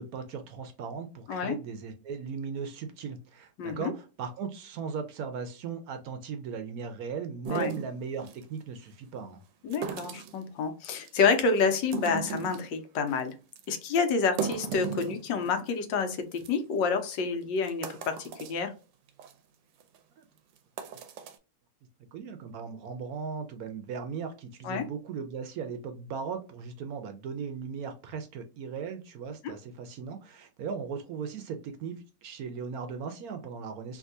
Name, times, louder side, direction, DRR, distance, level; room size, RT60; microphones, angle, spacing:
voice 1, 0.0-9.4 20.2-20.3 22.1-34.0, right 6 dB, 70° right, 7 dB, 0.9 m, -37 dB
voice 2, 3.6-3.9 7.5-7.7 9.6-13.3 13.7-18.7 24.6-24.8 29.4-29.5, left 5 dB, 90° left, 7 dB, 1.4 m, -28 dB
sound 1, 7.4-8.4 9.7-10.4 10.9-11.4 11.8-12.7 13.1-13.2 13.6-13.7 14.1-15.7 16.0-16.1 16.4-16.5 17.1-17.2 17.6-18.6 19.1-19.3 19.8-20.0 20.6-21.4, right 7 dB, 85° right, 1.3 m, -37 dB
3.5 x 2.7 x 2.6 m, 0.32 s
omnidirectional pair, 2.0 m